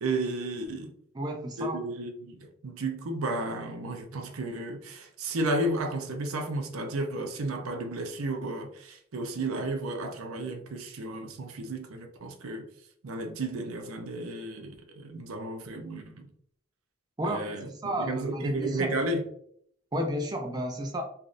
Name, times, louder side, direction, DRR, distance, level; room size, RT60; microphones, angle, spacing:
voice 1, 0.0-0.9 1.6-12.6 13.0-16.3 17.2-17.7 18.0-19.2, right 2 dB, 90° right, 0.6 m, -33 dB
voice 2, 1.1-1.8 17.2-19.0 19.9-21.0, equal, 20° right, 0.3 m, -32 dB
3.3 x 2.5 x 2.5 m
head